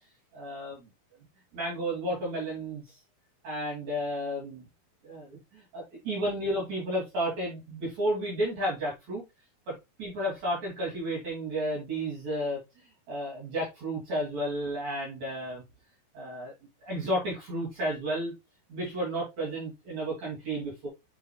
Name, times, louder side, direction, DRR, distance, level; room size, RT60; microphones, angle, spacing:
voice 1, 0.3-0.9 1.5-2.8 3.4-4.6 5.0-9.2 10.0-12.6 13.1-15.6 16.1-16.5 16.8-18.3 18.7-20.9, right 1 dB, 50° right, -5 dB, 3.9 m, -32 dB
9.1 x 5.2 x 2.4 m, 0.23 s
omnidirectional pair, 4.3 m